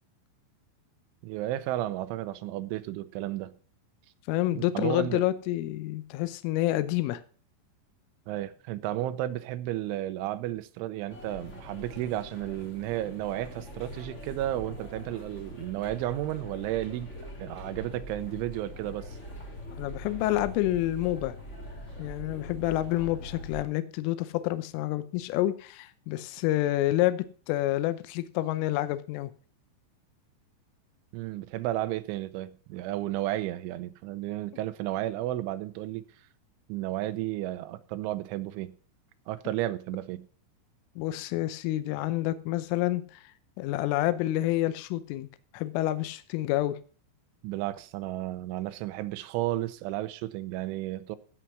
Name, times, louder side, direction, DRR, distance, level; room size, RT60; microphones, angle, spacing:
voice 1, 1.2-3.5 4.5-5.2 8.3-17.1 17.4-19.2 31.1-36.0 36.7-38.7 39.3-40.3 47.4-51.2, right 14 dB, 80° right, 3.0 m, -33 dB
voice 2, 4.3-7.2 19.8-21.4 22.0-29.3 41.0-43.2 43.6-45.3 45.5-46.8, left 15 dB, 80° left, 3.2 m, -28 dB
sound 1, 11.1-23.6, equal, 55° left, 0.8 m, -43 dB
16.0 x 5.7 x 6.1 m
omnidirectional pair, 5.8 m